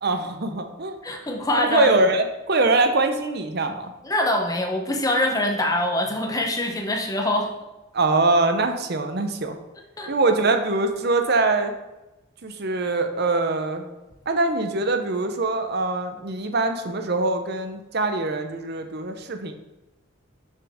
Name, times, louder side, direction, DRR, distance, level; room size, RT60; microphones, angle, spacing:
voice 1, 0.0-1.0 1.6-3.9 7.9-9.6 10.1-11.7 12.4-13.8 14.3-19.5, right 2 dB, 50° right, 6 dB, 0.7 m, -23 dB
voice 2, 1.0-1.9 4.0-7.5 10.0-10.1, left 1 dB, 15° left, 2 dB, 0.8 m, -24 dB
6.3 x 6.2 x 3.6 m, 1.0 s
head